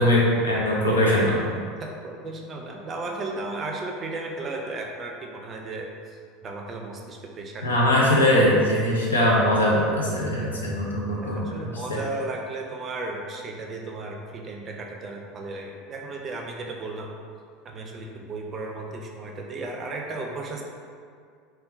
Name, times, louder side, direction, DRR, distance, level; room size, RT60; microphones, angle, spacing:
voice 1, 0.0-1.4 7.6-11.5 11.9-12.0, left 1 dB, 80° left, -4 dB, 0.6 m, -21 dB
voice 2, 1.8-6.2 6.4-8.0 11.2-17.1 17.6-20.6, right 2 dB, 35° right, 1 dB, 0.4 m, -35 dB
3.5 x 2.2 x 2.5 m, 2.2 s
figure-of-eight pair, 75°, 0 cm